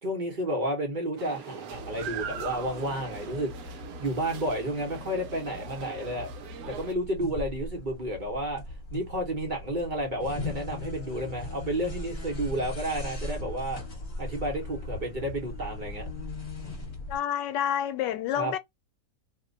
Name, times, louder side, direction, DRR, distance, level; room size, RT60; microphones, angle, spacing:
voice 1, 0.0-6.3 6.7-8.6 8.9-13.8 14.2-16.1 18.3-18.5, right 1 dB, 40° right, 0.8 m, -31 dB
sound 1, 1.2-6.9, right 8 dB, 70° right, 0.9 m, -41 dB
sound 2, 1.7-17.2, left 2 dB, 40° left, 1.3 m, -39 dB
voice 2, 17.1-18.6, left 10 dB, 85° left, 1.2 m, -28 dB
2.9 x 2.1 x 3.8 m
omnidirectional pair, 1.8 m